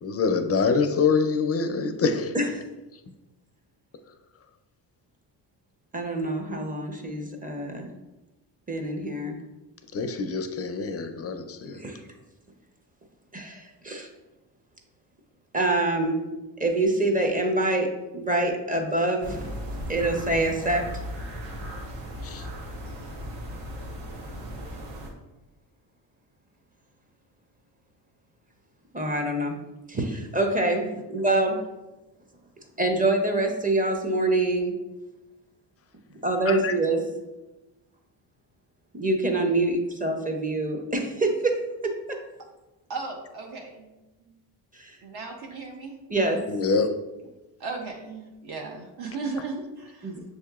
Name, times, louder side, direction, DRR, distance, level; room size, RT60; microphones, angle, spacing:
voice 1, 0.0-2.3 9.9-11.8 22.2-22.5 36.5-36.7 46.5-47.0, left 5 dB, 35° left, 7 dB, 0.4 m, -25 dB
voice 2, 5.9-7.9 8.7-9.4 11.7-12.0 13.3-14.1 15.5-16.2 16.6-19.5 19.9-20.8 28.9-29.6 29.9-31.6 32.8-34.7 36.2-37.0 38.9-41.6 41.8-42.2 44.7-45.0 46.1-46.4 50.0-50.2, right 2 dB, 20° right, 3 dB, 0.6 m, -25 dB
sound 1, 19.2-25.1, equal, 85° right, 0.9 m, -37 dB
voice 3, 42.9-43.9 45.0-46.0 47.6-50.1, right 4 dB, 60° right, 2 dB, 0.7 m, -36 dB
6.4 x 2.8 x 2.3 m, 1.0 s
cardioid pair, 95°, 43 cm